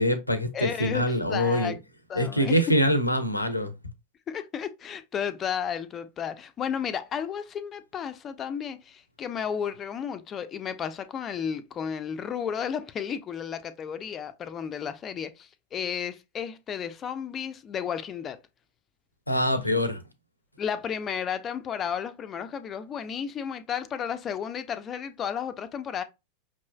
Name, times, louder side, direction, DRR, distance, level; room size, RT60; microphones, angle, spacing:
voice 1, 0.0-1.8 2.1-3.7 19.3-20.0, equal, 85° left, 0.7 m, -24 dB
voice 2, 0.5-1.8 2.1-2.6 4.3-18.4 20.6-26.0, left 8 dB, 25° left, 0.6 m, -33 dB
5.9 x 3.1 x 2.3 m
figure-of-eight pair, 90°, 0 cm